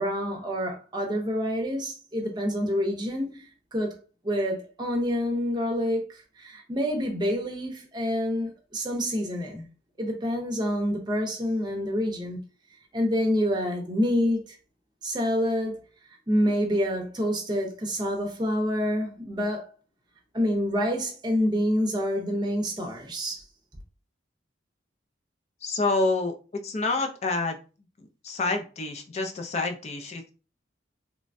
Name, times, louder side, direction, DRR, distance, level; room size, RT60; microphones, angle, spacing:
voice 1, 0.0-3.4 3.7-4.0 4.2-9.7 10.0-12.4 12.9-14.6 15.0-15.9 16.3-19.7 20.3-23.4, equal, 25° right, 0.6 m, -27 dB
voice 2, 25.6-27.6 28.2-30.3, left 3 dB, 35° left, 0.4 m, -28 dB
3.0 x 2.2 x 2.5 m
head